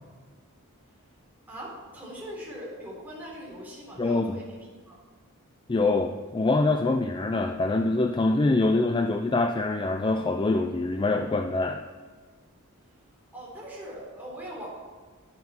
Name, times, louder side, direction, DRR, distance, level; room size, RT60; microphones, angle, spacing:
voice 1, 1.5-5.0 13.3-14.7, equal, 10° right, -6 dB, 3.9 m, -41 dB
voice 2, 4.0-4.4 5.7-11.8, left 2 dB, 20° left, 7 dB, 0.4 m, -24 dB
10.5 x 9.4 x 4.4 m, 1.5 s
head